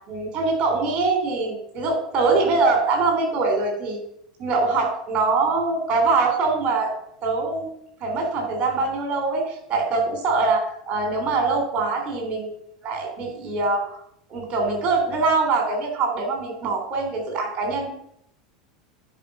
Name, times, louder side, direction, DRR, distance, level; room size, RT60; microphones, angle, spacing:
voice 1, 0.1-4.1 4.4-6.9 7.2-7.7 8.0-12.5 12.8-13.9 14.3-17.9, right 3 dB, 35° right, 2 dB, 3.6 m, -23 dB
9.9 x 5.0 x 5.5 m, 0.72 s
figure-of-eight pair, 85°, 3 cm